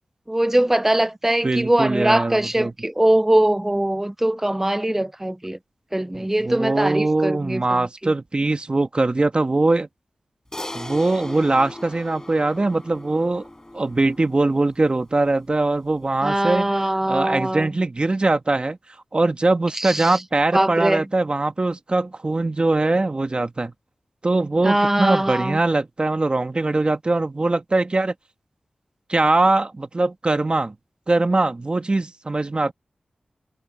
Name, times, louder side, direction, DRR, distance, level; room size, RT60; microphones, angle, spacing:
voice 1, 0.3-5.6 5.9-7.8 16.2-17.7 19.7-20.2 20.5-21.0 24.6-25.6, right 1 dB, 15° right, 0.6 m, -21 dB
voice 2, 1.4-2.7 6.1-9.9 10.7-13.5 13.7-16.7 17.1-18.8 19.1-23.7 24.2-28.1 29.1-30.7 31.1-32.7, right 2 dB, 40° right, 1.7 m, -21 dB
Crash cymbal, 10.5-15.1, left 1 dB, 20° left, 5.3 m, -38 dB
cardioid pair, 55°, 3 cm